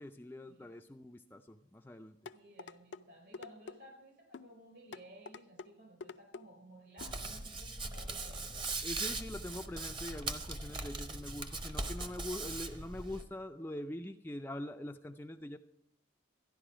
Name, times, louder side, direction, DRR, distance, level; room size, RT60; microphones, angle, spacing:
voice 1, 0.0-2.1 8.8-15.6, left 1 dB, 10° left, 6 dB, 0.4 m, -44 dB
sound 1, 2.3-3.0 3.3-3.8 4.3-4.5 4.9-5.7 6.0-6.4 7.0-7.2 7.6-7.7, left 4 dB, 70° left, 0.4 m, -46 dB
voice 2, 2.3-8.6, equal, 55° right, 3 dB, 5.0 m, -56 dB
Hands, 7.0-13.2, right 3 dB, 25° right, 0.9 m, -40 dB
13.5 x 11.0 x 5.0 m, 0.78 s
head